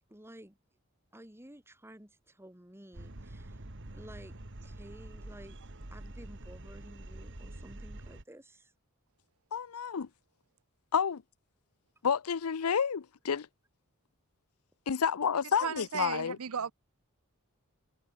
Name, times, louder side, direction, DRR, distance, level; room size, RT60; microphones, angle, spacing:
voice 1, 0.1-0.6 1.1-3.6 3.9-5.6 5.9-8.7, right 1 dB, 10° right, 2.9 m, -53 dB
sound 1, 2.9-8.2, right 1 dB, 60° right, 2.0 m, -46 dB
voice 2, 9.5-10.1 10.9-11.2 12.0-13.5 14.9-16.4, left 7 dB, 90° left, 0.6 m, -30 dB
voice 3, 15.6-16.7, right 7 dB, 80° right, 0.7 m, -35 dB
head